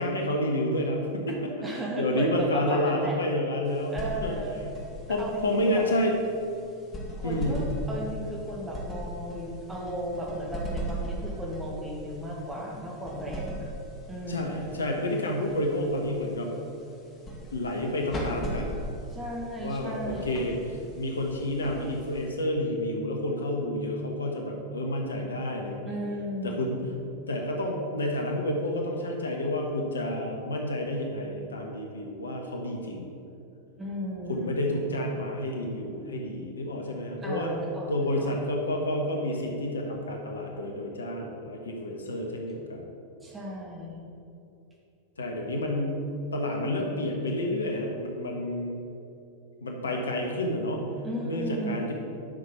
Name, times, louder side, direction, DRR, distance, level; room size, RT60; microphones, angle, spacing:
voice 1, 0.0-1.5 2.0-4.4 5.1-6.2 7.2-7.6 14.3-16.5 17.5-18.8 19.6-26.0 26.4-26.9 27.3-33.1 34.3-37.6 37.9-42.9 45.2-48.8 49.6-50.8 51.2-51.9, left 1 dB, 70° left, 1 dB, 1.4 m, -29 dB
voice 2, 1.6-3.2 3.9-4.6 5.1-5.8 7.2-13.7 14.1-14.7 19.1-20.4 25.9-26.7 33.8-34.6 37.2-38.3 43.2-44.0 51.0-51.8, equal, 15° right, -3 dB, 2.4 m, -35 dB
sound 1, 3.6-22.5, equal, 25° left, 2.2 m, -39 dB
10.5 x 6.3 x 5.8 m, 2.7 s
figure-of-eight pair, 90°, 0 cm